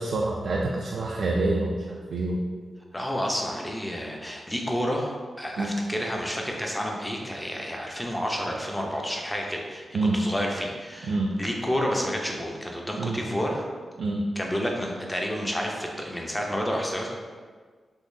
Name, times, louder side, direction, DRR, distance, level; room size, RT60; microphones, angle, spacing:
voice 1, 0.0-2.4 5.6-5.7 9.9-10.2 11.1-11.3 13.0-13.2 14.0-14.2, right 2 dB, 75° right, -2 dB, 0.3 m, -27 dB
voice 2, 2.9-9.9 10.1-13.7 14.4-17.1, equal, 10° left, 0 dB, 0.5 m, -30 dB
3.6 x 2.7 x 2.6 m, 1.5 s
cardioid pair, 80°, 0 cm